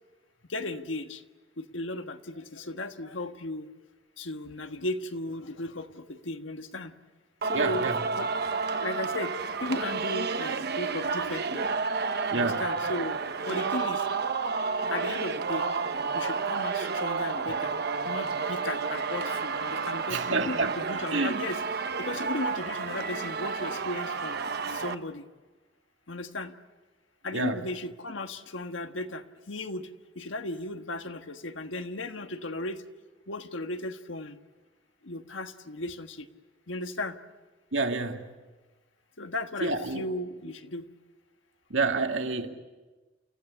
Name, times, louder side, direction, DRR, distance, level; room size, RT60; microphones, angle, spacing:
voice 1, 0.5-1.2 1.6-3.7 4.2-6.9 7.4-7.9 8.2-8.3 8.8-9.3 9.6-11.6 12.3-13.2 13.4-14.1 14.9-15.7 16.1-17.7 18.0-21.6 22.0-24.4 24.7-25.2 26.1-26.5 27.2-32.8 33.3-34.4 35.0-36.3 36.7-37.2 39.2-40.9, left 2 dB, 75° left, 1.4 m, -36 dB
Singing, 7.4-24.9, right 5 dB, 55° right, 1.1 m, -31 dB
voice 2, 7.5-8.0 12.3-12.6 20.1-20.8 21.1-21.4 27.3-27.6 37.7-38.2 39.6-40.0 41.7-42.5, right 3 dB, 75° right, 2.2 m, -28 dB
29.5 x 16.0 x 9.9 m
head